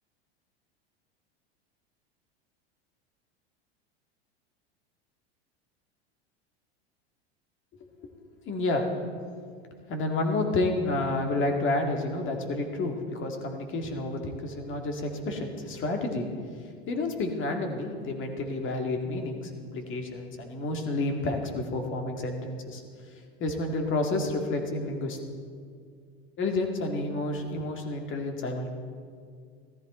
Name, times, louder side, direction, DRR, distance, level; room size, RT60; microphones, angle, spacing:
voice 1, 8.5-8.9 9.9-16.3 16.9-22.8 23.4-25.2 26.4-28.7, left 2 dB, 40° left, 3 dB, 2.2 m, -30 dB
14.5 x 14.0 x 4.4 m, 2.1 s
hypercardioid pair, 95°, 32 cm